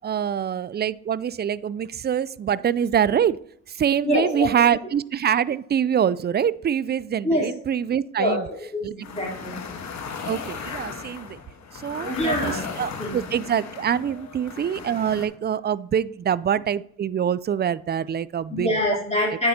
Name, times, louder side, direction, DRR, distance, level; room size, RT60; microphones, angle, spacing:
voice 1, 0.0-3.4 3.7-8.4 8.8-8.9 10.3-11.4 11.8-18.7, right 8 dB, 35° right, 19 dB, 0.4 m, -25 dB
voice 2, 4.0-4.6 7.2-7.5 8.2-8.4 8.7-9.6 12.0-12.6 13.0-13.2 18.5-19.5, left 1 dB, 20° left, -4 dB, 3.4 m, -24 dB
sound 1, 9.0-15.3, left 5 dB, 65° left, 1.4 m, -36 dB
9.1 x 6.7 x 2.9 m, 0.64 s
supercardioid pair, 60°, 29 cm